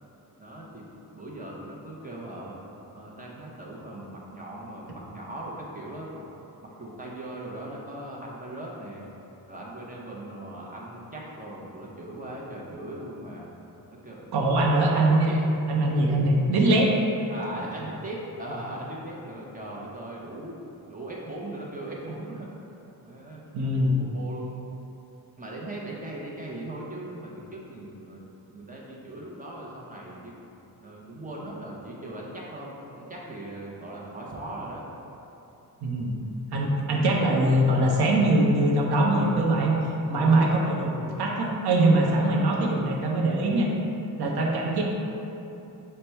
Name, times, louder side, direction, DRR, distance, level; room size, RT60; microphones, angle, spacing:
voice 1, 0.4-2.6 2.9-6.2 6.6-9.1 9.5-13.5 14.0-14.8 16.1-16.2 17.3-22.7 23.0-23.4 23.7-24.6 25.4-28.2 28.5-30.4 30.8-34.8, right 1 dB, 20° right, -4 dB, 0.6 m, -39 dB
voice 2, 14.3-16.9 23.5-24.0 35.8-36.2 36.5-39.8 40.1-43.7 44.2-44.8, right 1 dB, 80° right, -1 dB, 0.7 m, -22 dB
5.4 x 2.2 x 4.4 m, 2.9 s
wide cardioid pair, 160°, 38 cm